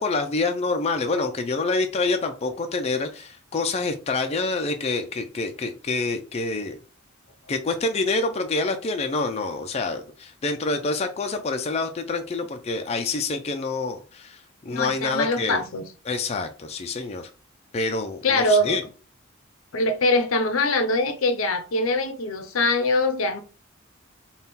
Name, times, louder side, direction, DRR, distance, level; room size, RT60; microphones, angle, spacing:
voice 1, 0.0-6.8 7.5-15.6 16.1-17.3 17.7-18.8, left 3 dB, 30° left, 0.4 m, -27 dB
voice 2, 14.7-15.8 18.2-18.8 19.7-23.4, left 2 dB, 80° left, 0.6 m, -23 dB
3.6 x 2.3 x 4.1 m
head